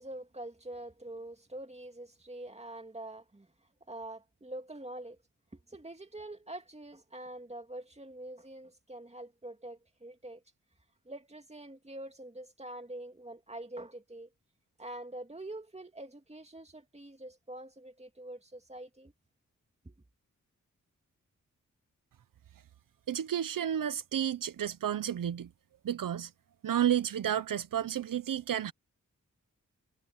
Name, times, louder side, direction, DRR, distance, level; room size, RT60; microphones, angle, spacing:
voice 1, 0.0-3.5 3.9-5.2 5.5-10.4 11.0-14.3 14.8-19.1 19.8-20.0, right 1 dB, 20° right, 2.6 m, -45 dB
voice 2, 23.1-25.5 25.8-26.3 26.6-28.7, right 10 dB, 80° right, 0.8 m, -31 dB
cardioid pair, 60°, 32 cm